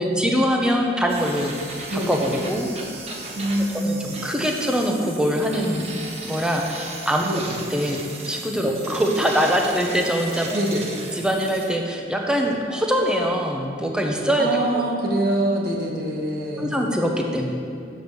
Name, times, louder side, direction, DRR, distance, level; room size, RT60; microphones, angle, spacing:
voice 1, 0.0-1.5 1.9-2.7 3.7-5.9 6.2-7.4 7.7-10.6 11.1-14.8 16.6-17.6, equal, 5° right, 1 dB, 0.7 m, -23 dB
sound 1, 1.1-11.7, right 3 dB, 35° right, 1.0 m, -36 dB
voice 2, 1.9-2.2 3.3-4.1 7.2-7.6 8.6-8.8 10.5-10.9 14.4-16.8, right 1 dB, 55° right, -2 dB, 1.2 m, -25 dB
7.0 x 5.2 x 6.2 m, 2.4 s
head